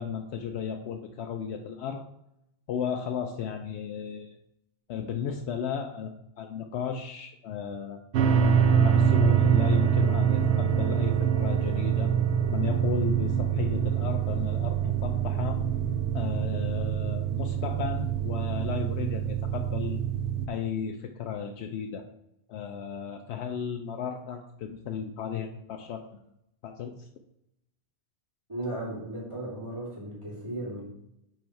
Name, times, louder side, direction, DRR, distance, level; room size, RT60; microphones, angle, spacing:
voice 1, 0.0-2.0 2.7-4.4 4.9-8.0 8.3-12.1 12.5-15.6 16.1-20.0 20.5-22.1 22.5-26.0 26.6-27.1, left 7 dB, 80° left, 4 dB, 0.9 m, -34 dB
sound 1, 8.1-20.5, right 8 dB, 90° right, 0.9 m, -25 dB
voice 2, 28.5-30.8, right 1 dB, 25° right, -6 dB, 2.6 m, -36 dB
9.0 x 3.1 x 4.5 m, 0.82 s
omnidirectional pair, 1.1 m